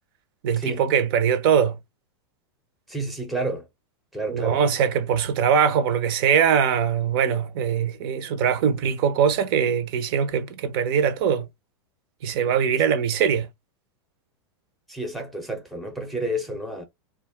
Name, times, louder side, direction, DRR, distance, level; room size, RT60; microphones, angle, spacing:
voice 1, 0.4-1.8 4.3-11.5 12.2-13.5, right 7 dB, 55° right, 0.6 m, -22 dB
voice 2, 2.9-3.7 4.1-4.6 14.9-16.8, right 1 dB, ahead, 0.5 m, -30 dB
2.4 x 2.3 x 3.3 m
supercardioid pair, 140°, 14 cm